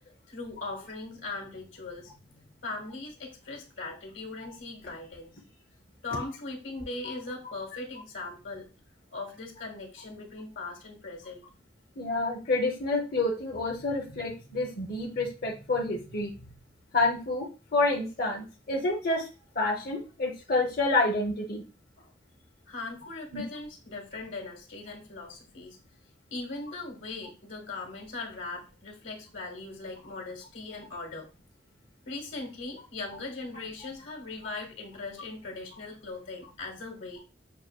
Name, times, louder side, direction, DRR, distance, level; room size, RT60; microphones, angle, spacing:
voice 1, 0.3-5.3 6.0-8.7 9.1-11.4 22.0-22.1 22.7-25.8 26.3-31.3 32.0-37.2, left 3 dB, 80° left, 1 dB, 1.3 m, -39 dB
voice 2, 12.0-16.5 16.9-19.3 19.5-21.6 23.3-23.4, left 2 dB, 50° left, -2 dB, 0.8 m, -28 dB
6.5 x 2.2 x 2.3 m, 0.32 s
head